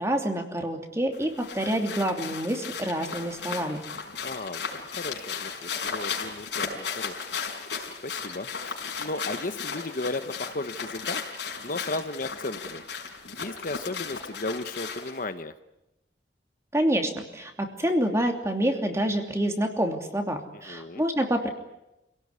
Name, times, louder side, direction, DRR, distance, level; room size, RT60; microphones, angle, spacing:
voice 1, 0.0-3.8 16.7-21.5, right 1 dB, 15° right, 4 dB, 2.9 m, -27 dB
sound 1, 1.1-15.2, left 6 dB, 75° left, 5.3 m, -35 dB
voice 2, 4.2-7.1 7.5-11.3 11.6-12.8 13.3-15.5 20.5-21.0, left 2 dB, 50° left, 9 dB, 1.1 m, -35 dB
27.0 x 18.0 x 9.8 m, 0.93 s
head